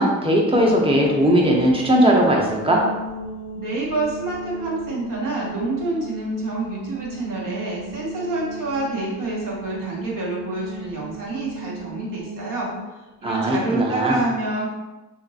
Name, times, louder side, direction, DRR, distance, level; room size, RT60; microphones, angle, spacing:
voice 1, 0.0-2.8 13.2-14.2, equal, 15° right, -2 dB, 0.7 m, -18 dB
sound 1, 0.5-12.9, right 4 dB, 60° right, 1.2 m, -35 dB
voice 2, 3.5-12.7 13.2-14.7, right 2 dB, 80° right, -4 dB, 1.0 m, -27 dB
2.9 x 2.5 x 2.7 m, 1.1 s
cardioid pair, 60°, 32 cm